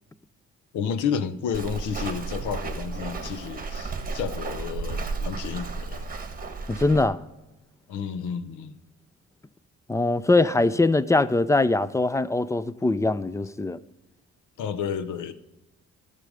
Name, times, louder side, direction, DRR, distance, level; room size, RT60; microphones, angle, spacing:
voice 1, 0.7-6.0 7.9-8.8 14.6-15.3, left 7 dB, 80° left, 0.8 m, -31 dB
Walk footsteps, 1.5-7.0, right 4 dB, 30° right, 1.3 m, -33 dB
voice 2, 6.7-7.2 9.9-13.8, left 2 dB, 10° left, 0.4 m, -22 dB
12.5 x 6.8 x 5.0 m
cardioid pair, 90°, 30 cm